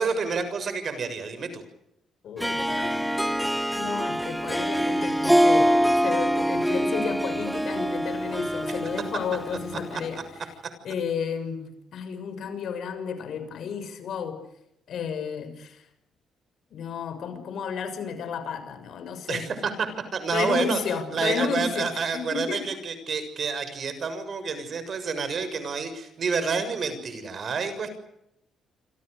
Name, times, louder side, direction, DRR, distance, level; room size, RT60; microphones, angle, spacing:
voice 1, 0.0-1.6 9.9-10.0 19.3-20.8 21.1-27.9, right 5 dB, 50° right, 11 dB, 6.8 m, -29 dB
voice 2, 2.2-3.1 3.7-10.2 10.8-14.4 14.9-15.9 16.7-19.5 20.3-22.6, left 6 dB, 70° left, 9 dB, 6.7 m, -32 dB
Harp, 2.4-10.1, equal, 5° right, 1.6 m, -25 dB
28.0 x 26.5 x 6.7 m, 0.80 s
cardioid pair, 90°, 0 cm